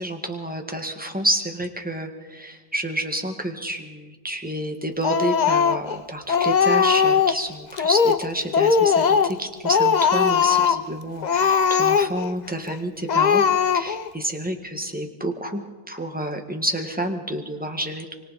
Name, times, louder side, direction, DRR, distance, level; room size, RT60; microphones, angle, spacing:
voice 1, 0.0-18.1, right 1 dB, 5° right, 3 dB, 1.6 m, -29 dB
Speech, 5.0-6.0 6.3-7.4 7.8-8.3 8.5-9.4 9.6-10.8 11.2-12.3 12.7-12.8 13.1-14.1, left 6 dB, 75° left, 0.4 m, -19 dB
25.0 x 25.0 x 4.3 m, 1.3 s
omnidirectional pair, 1.7 m